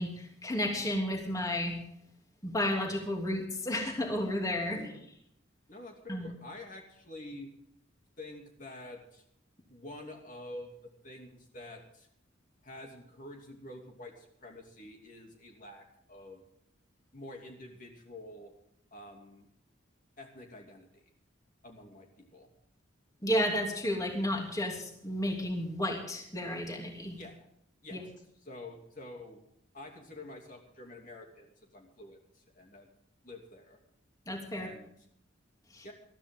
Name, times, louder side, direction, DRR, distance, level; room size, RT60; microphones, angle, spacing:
voice 1, 0.0-1.8 2.4-4.8 6.1-6.3 23.2-27.2 27.9-28.0 34.3-34.7 35.7-35.9, left 1 dB, 15° left, 2 dB, 3.0 m, -32 dB
voice 2, 4.7-5.1 5.7-7.5 8.2-9.2 9.7-12.1 12.6-16.4 17.1-18.5 18.9-19.5 20.2-21.0 21.6-22.5 27.1-27.5 27.8-28.1 28.4-29.4 29.7-32.9 33.2-33.8 34.5-34.9 35.8-35.9, left 1 dB, 40° left, 1 dB, 2.8 m, -48 dB
21.0 x 14.0 x 3.8 m, 0.71 s
head